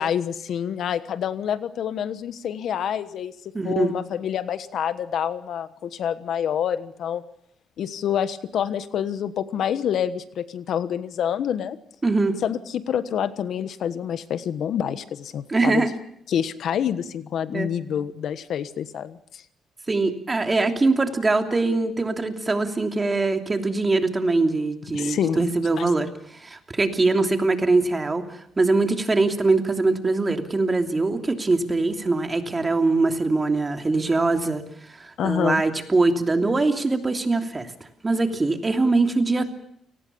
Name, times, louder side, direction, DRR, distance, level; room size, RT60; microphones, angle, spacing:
voice 1, 0.0-3.3 3.6-7.2 7.8-11.8 12.4-15.8 16.3-19.4 24.9-25.4 25.8-25.9 35.2-35.6, left 9 dB, 70° left, 13 dB, 1.2 m, -27 dB
voice 2, 3.5-3.9 12.0-12.4 15.5-15.9 17.5-17.7 19.9-34.6 35.0-39.5, right 3 dB, 25° right, 5 dB, 3.0 m, -22 dB
29.0 x 19.0 x 7.0 m, 0.68 s
cardioid pair, 90°, 0 cm